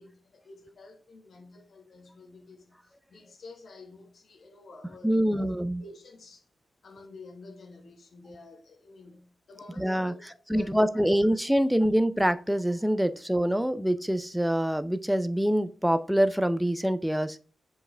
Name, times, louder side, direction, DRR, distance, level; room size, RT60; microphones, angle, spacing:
voice 1, 0.0-5.5 5.8-6.5 6.8-10.2 10.5-11.0, left 3 dB, 55° left, 1.5 m, -49 dB
voice 2, 5.0-5.8 9.8-10.1 10.5-17.4, equal, ahead, 0.4 m, -25 dB
7.6 x 4.8 x 3.3 m
wide cardioid pair, 145°, 0 cm